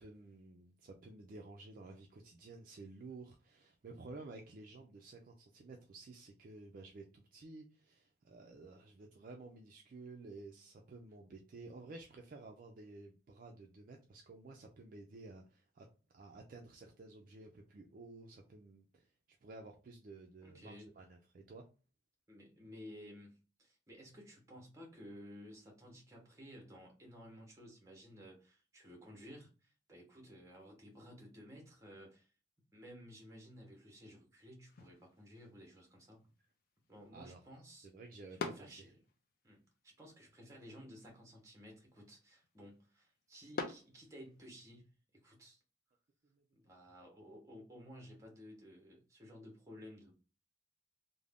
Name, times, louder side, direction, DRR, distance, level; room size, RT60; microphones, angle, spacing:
voice 1, 0.0-15.9 16.1-19.1 19.4-21.7 37.1-37.4 37.8-38.9 46.3-46.4, right 3 dB, 45° right, 2 dB, 0.3 m, -53 dB
voice 2, 20.4-20.9 22.3-32.3 32.7-36.2 36.9-37.9 38.3-38.9 39.4-44.9 45.2-45.6 46.5-50.1, equal, 15° right, 0 dB, 0.7 m, -55 dB
sound 1, 34.6-44.7, left 4 dB, 50° left, 0.4 m, -50 dB
2.5 x 2.0 x 3.2 m, 0.34 s
head